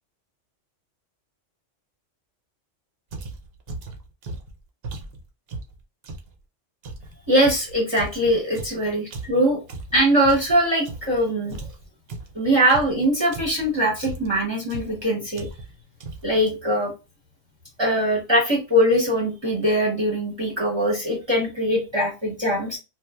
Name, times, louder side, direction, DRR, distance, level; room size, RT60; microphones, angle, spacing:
sound 1, 3.1-6.3 6.8-11.2 11.5-13.7 14.0-14.4 14.7-15.0 15.3-15.7 16.0-16.4, right 3 dB, 60° right, 0.8 m, -37 dB
voice 1, 7.3-9.6 9.9-11.5 12.3-15.5 16.2-16.9 17.8-22.8, equal, 25° right, -2 dB, 0.8 m, -21 dB
3.2 x 2.4 x 2.3 m, 0.28 s
omnidirectional pair, 1.3 m